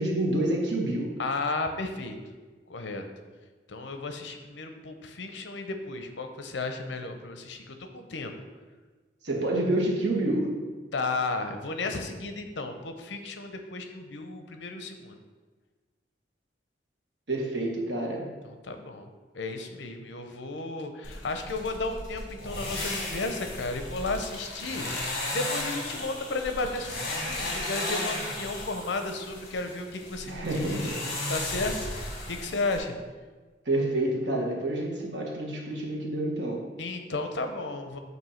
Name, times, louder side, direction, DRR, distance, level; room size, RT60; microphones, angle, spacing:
voice 1, 0.0-1.2 9.2-10.6 17.3-18.3 30.3-31.0 33.6-36.7, right 1 dB, 75° right, -1 dB, 1.3 m, -28 dB
voice 2, 1.2-2.2 2.7-3.0 3.7-8.3 10.9-15.2 18.4-19.1 19.3-30.9 31.3-31.7 32.3-32.9 36.8-38.0, left 3 dB, 75° left, 6 dB, 0.7 m, -33 dB
sound 1, 21.0-32.8, left 1 dB, 55° left, 1.5 m, -35 dB
7.8 x 2.7 x 5.6 m, 1.3 s
head